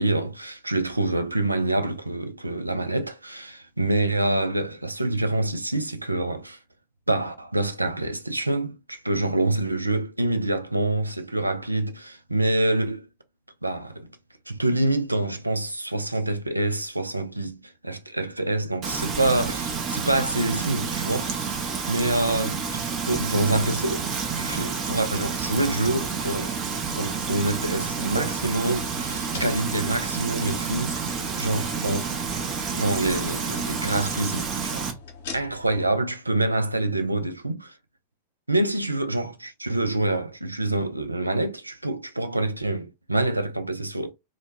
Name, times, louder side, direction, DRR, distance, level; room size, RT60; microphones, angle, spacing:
voice 1, 0.0-6.6 7.1-13.1 13.6-14.1 14.5-22.6 23.1-26.5 27.0-32.1 32.7-34.9 35.3-37.7 38.5-39.3 39.6-44.1, right 2 dB, 85° right, 0.3 m, -26 dB
Frying (food), 18.8-34.9, right 6 dB, 30° right, 0.6 m, -29 dB
sound 1, 23.5-35.9, left 5 dB, 60° left, 0.7 m, -44 dB
2.1 x 2.1 x 2.9 m
figure-of-eight pair, 90°, 0 cm